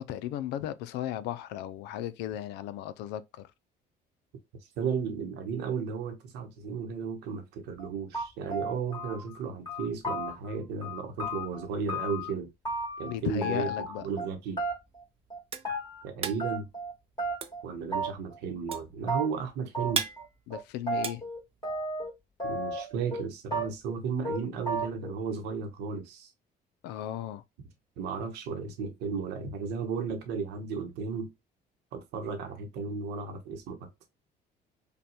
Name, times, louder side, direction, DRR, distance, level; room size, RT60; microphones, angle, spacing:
voice 1, 0.0-3.5 13.0-14.1 20.5-21.2 26.8-27.4, left 12 dB, 90° left, 0.4 m, -36 dB
voice 2, 4.8-12.5 13.0-14.6 16.0-16.7 17.6-20.0 22.4-26.3 28.0-31.3 31.9-33.9, right 5 dB, 90° right, 0.9 m, -34 dB
sound 1, 7.8-7.9 8.1-9.4 9.7-10.5 10.8-12.3 12.6-13.1 13.4-14.3 14.6-15.0 15.3-16.0 16.4-16.9 17.2-17.6 17.9-18.4 18.7-18.8 19.1-19.3 19.7-20.2 20.5-22.1 22.4-23.2 23.5-24.0 24.2-24.4 24.7-25.1, right 1 dB, 25° left, 2.0 m, -33 dB
sound 2, 14.9-22.0, right 7 dB, 35° right, 0.5 m, -37 dB
5.2 x 2.3 x 2.9 m
cardioid pair, 110°, 17 cm